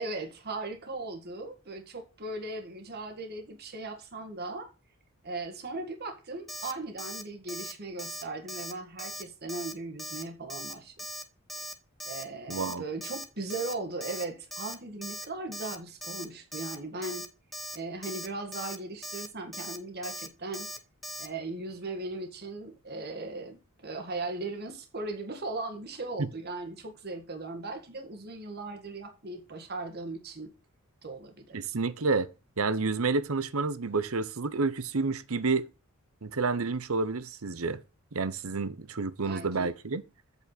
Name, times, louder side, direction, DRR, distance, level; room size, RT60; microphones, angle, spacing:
voice 1, 0.0-4.7 5.2-11.1 12.0-17.3 17.7-20.7 21.2-30.5 31.0-31.6 39.2-39.7, right 2 dB, 45° right, 1.8 m, -38 dB
Alarm, 6.5-6.7 7.0-7.2 7.5-7.7 8.0-8.2 8.5-8.7 9.0-9.2 9.5-9.7 10.0-10.2 10.5-10.7 11.0-11.2 11.5-11.7 12.0-12.2 12.5-12.7 13.0-13.2 13.5-13.7 14.0-14.2 14.5-14.8 15.0-15.3 15.5-15.8 16.0-16.3 16.5-16.8 17.0-17.3 17.5-17.8 18.0-18.3 18.5-18.8 19.0-19.3 19.5-19.8 20.0-20.3 20.5-20.8 21.0-21.3, equal, ahead, 1.1 m, -39 dB
voice 2, 12.5-12.8 26.2-26.3 31.5-32.3 32.6-35.7 36.2-37.8 38.1-40.0, right 4 dB, 70° right, 0.9 m, -29 dB
8.4 x 6.9 x 4.1 m
head